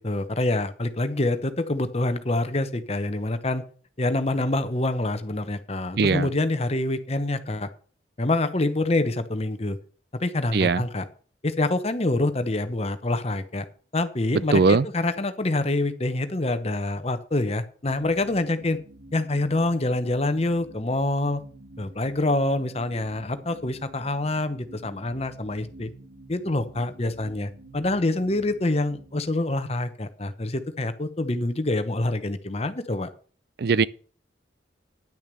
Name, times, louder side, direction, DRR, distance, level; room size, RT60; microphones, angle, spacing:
voice 1, 0.0-3.6 4.0-7.7 8.2-9.8 10.1-11.0 11.4-13.6 13.9-18.8 19.1-21.4 21.8-25.9 26.3-33.1, left 2 dB, 35° left, 1.0 m, -26 dB
voice 2, 6.0-6.3 10.5-10.8 14.5-14.9 33.6-33.9, right 4 dB, 60° right, 0.4 m, -19 dB
sound 1, 17.8-29.2, right 1 dB, 90° right, 2.1 m, -48 dB
10.5 x 6.5 x 6.8 m
head